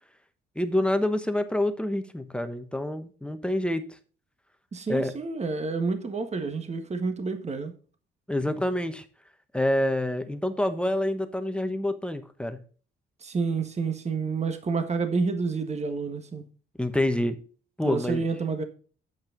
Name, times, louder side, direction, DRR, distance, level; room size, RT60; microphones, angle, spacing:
voice 1, 0.5-3.8 4.9-5.2 8.3-9.0 9.5-12.6 16.8-17.4 17.8-18.2, left 1 dB, 5° left, 1.2 m, -27 dB
voice 2, 4.7-7.7 13.2-16.4 17.8-18.6, right 4 dB, 35° right, 1.5 m, -29 dB
8.7 x 7.9 x 3.9 m
supercardioid pair, 75°, 21 cm